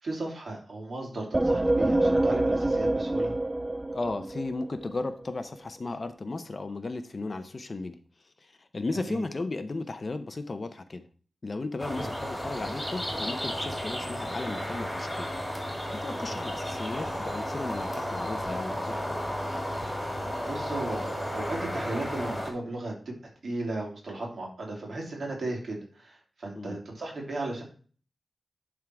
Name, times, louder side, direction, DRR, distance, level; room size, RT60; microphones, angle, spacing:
voice 1, 0.0-3.3 9.0-9.3 11.9-12.1 19.8-23.1 23.4-27.6, right 2 dB, 60° right, -1 dB, 2.9 m, -36 dB
sound 1, 1.3-4.9, right 2 dB, 20° right, 0.3 m, -26 dB
voice 2, 3.9-8.0 8.4-11.1 11.4-15.3 15.7-19.2 26.6-26.8, left 3 dB, 35° left, 10 dB, 0.7 m, -35 dB
sound 2, 11.8-22.5, equal, 5° left, 2.0 m, -33 dB
11.0 x 3.7 x 4.6 m, 0.41 s
wide cardioid pair, 145°, 0 cm